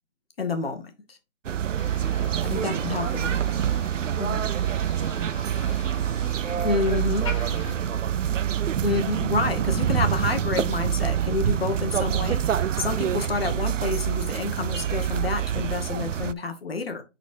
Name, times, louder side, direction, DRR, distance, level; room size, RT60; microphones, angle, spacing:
voice 1, 0.4-1.2 2.4-3.4 4.2-4.4 6.6-7.3 8.8-17.0, left 4 dB, 50° left, 1.3 m, -29 dB
sound 1, 1.4-16.3, right 10 dB, 80° right, 0.5 m, -26 dB
Motor vehicle (road), 1.7-7.8, left 3 dB, 25° left, 1.2 m, -42 dB
voice 2, 2.5-7.4 7.7-8.6, right 3 dB, 25° right, 2.2 m, -41 dB
9.0 x 4.2 x 2.7 m
figure-of-eight pair, 160°, 37 cm